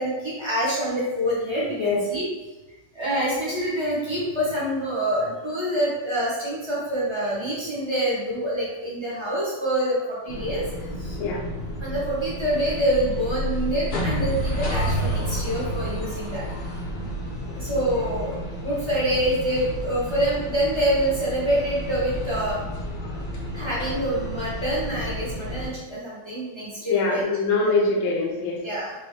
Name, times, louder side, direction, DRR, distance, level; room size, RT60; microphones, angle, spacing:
voice 1, 0.0-2.3 2.9-10.6 11.0-11.2 11.8-16.4 17.6-18.3 18.6-22.7 23.5-27.2 28.6-28.9, right 1 dB, 15° right, -8 dB, 1.0 m, -26 dB
sound 1, 10.3-25.7, equal, 60° left, 1.1 m, -31 dB
voice 2, 26.9-28.6, left 3 dB, 75° left, -1 dB, 1.4 m, -23 dB
5.1 x 3.0 x 3.2 m, 1.1 s
omnidirectional pair, 2.3 m